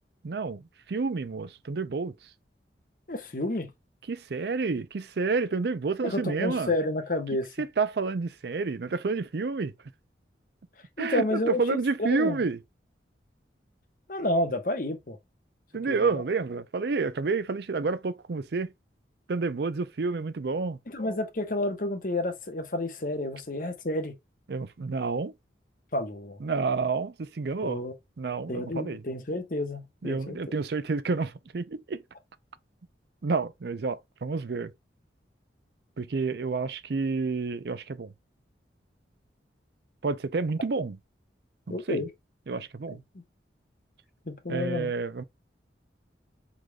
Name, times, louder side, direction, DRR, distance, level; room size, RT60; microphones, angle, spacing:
voice 1, 0.2-2.1 4.1-6.7 7.6-9.7 11.0-12.6 15.7-18.7 19.3-20.8 24.5-25.3 26.4-27.8 28.2-29.0 30.0-32.0 33.2-34.7 36.0-38.1 40.0-41.0 41.7-42.0 42.5-43.0 44.5-45.2, right 4 dB, 65° right, 0.5 m, -29 dB
voice 2, 3.1-3.7 6.0-7.5 11.0-11.8 12.1-12.4 14.1-15.2 15.9-16.1 20.9-24.1 25.9-26.4 27.6-27.9 28.5-30.4 41.7-42.1 44.3-44.9, left 1 dB, 50° left, 1.0 m, -30 dB
4.9 x 3.9 x 2.2 m
head